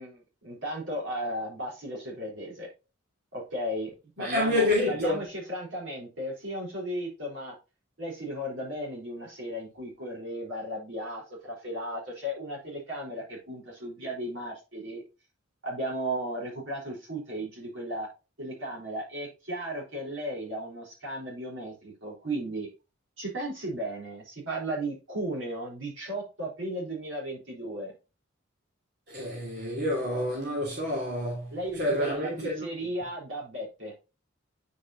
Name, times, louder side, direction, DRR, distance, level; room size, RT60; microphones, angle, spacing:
voice 1, 0.0-2.7 3.3-7.5 8.0-15.0 15.6-18.1 18.4-22.7 23.2-27.9 31.5-33.9, right 1 dB, 75° right, 4.1 m, -35 dB
voice 2, 4.2-5.2 29.1-32.6, left 1 dB, 50° right, 3.1 m, -28 dB
9.8 x 5.4 x 2.7 m
head